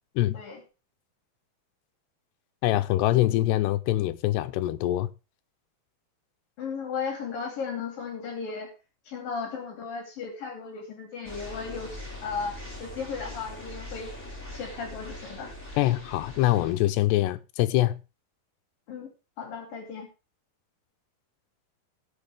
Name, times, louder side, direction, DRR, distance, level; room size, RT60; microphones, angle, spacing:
voice 1, 2.6-5.1 15.8-18.0, left 15 dB, 85° left, 2.9 m, -24 dB
voice 2, 6.6-8.7 9.1-14.1 14.5-15.5 18.9-19.1 19.4-20.1, left 5 dB, 60° left, 4.0 m, -35 dB
sound 1, 11.2-16.7, left 1 dB, 5° left, 6.7 m, -42 dB
19.0 x 6.9 x 3.5 m
omnidirectional pair, 4.9 m